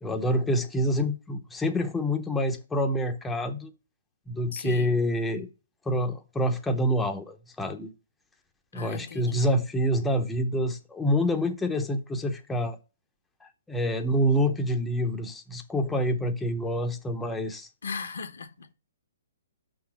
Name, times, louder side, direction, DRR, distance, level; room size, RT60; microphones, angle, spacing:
voice 1, 0.0-3.7 4.3-5.5 5.9-7.9 8.7-12.8 13.7-17.7, equal, 5° left, 0.7 m, -27 dB
voice 2, 4.5-5.0 8.7-9.4 17.8-18.7, left 5 dB, 80° left, 0.9 m, -37 dB
5.7 x 3.8 x 5.9 m
hypercardioid pair, 145°, 0 cm